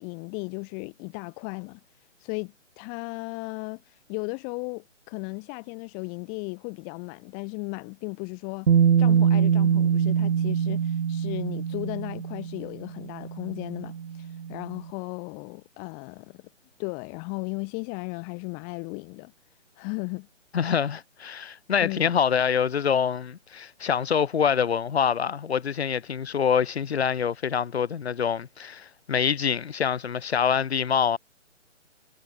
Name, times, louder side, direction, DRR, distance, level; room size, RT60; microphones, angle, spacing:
voice 1, 0.0-1.8 2.2-8.7 9.0-16.4 16.8-19.3 19.8-20.3 21.8-22.1, left 39 dB, 20° left, 5.8 m, -36 dB
Bass guitar, 8.7-14.7, right 7 dB, 55° right, 1.0 m, -24 dB
voice 2, 20.5-31.2, left 7 dB, 55° left, 1.6 m, -25 dB
figure-of-eight pair, 145°, 38 cm